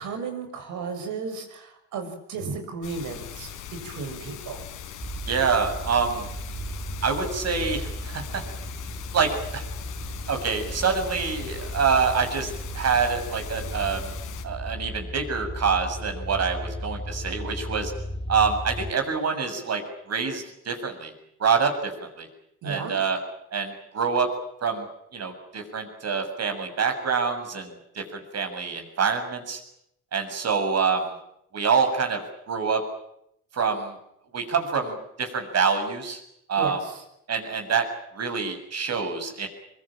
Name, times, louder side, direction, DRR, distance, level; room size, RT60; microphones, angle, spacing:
voice 1, 0.0-4.6 22.6-22.9 36.5-37.0, right 4 dB, 85° right, 6 dB, 6.9 m, -34 dB
sound 1, 2.8-14.4, left 9 dB, 90° left, 4.0 m, -40 dB
sound 2, 5.0-18.9, equal, 15° right, 3.8 m, -36 dB
voice 2, 5.3-6.2 7.0-8.4 9.1-9.7 10.3-14.1 14.4-17.9 18.3-19.8 20.1-21.1 21.4-21.9 22.2-22.3 22.6-23.2 23.5-24.3 24.6-24.9 25.1-29.6 30.1-31.1 31.5-32.2 32.5-32.8 33.5-33.9 34.3-36.2 36.5-36.8 37.3-37.9 38.1-39.5, right 5 dB, 55° right, 5 dB, 7.2 m, -26 dB
24.5 x 23.0 x 9.0 m, 0.76 s
cardioid pair, 90°, 30 cm